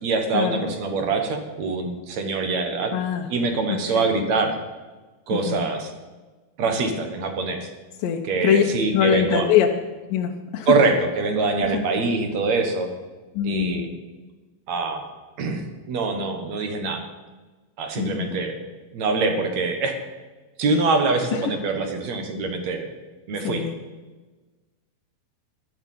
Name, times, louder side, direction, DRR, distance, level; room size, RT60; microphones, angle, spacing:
voice 1, 0.0-2.9 3.3-4.6 5.3-5.9 6.6-7.7 8.3-9.5 10.7-12.9 13.4-13.9 14.7-15.1 15.4-17.0 17.8-18.6 18.9-20.0 20.6-22.9 23.3-23.6, right 3 dB, 55° right, 5 dB, 2.2 m, -24 dB
voice 2, 2.9-3.3 3.7-4.0 5.3-5.6 8.0-8.6 8.9-9.7 10.1-10.7 11.6-11.8 13.3-13.9 18.0-18.4 21.3-21.5 23.4-23.7, left 9 dB, 70° left, 2 dB, 2.3 m, -23 dB
14.5 x 11.5 x 5.5 m, 1.3 s
omnidirectional pair, 4.5 m